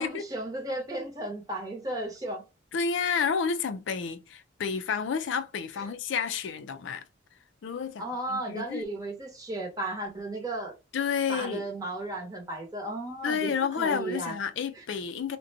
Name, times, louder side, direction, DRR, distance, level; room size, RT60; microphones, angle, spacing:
voice 1, 0.0-2.4 5.8-5.9 8.0-10.7 11.3-14.3, right 1 dB, 20° right, 0.8 m, -34 dB
voice 2, 2.7-7.0 7.6-8.8 10.9-11.6 13.2-15.4, left 6 dB, 80° left, 0.4 m, -30 dB
2.5 x 2.2 x 2.6 m
head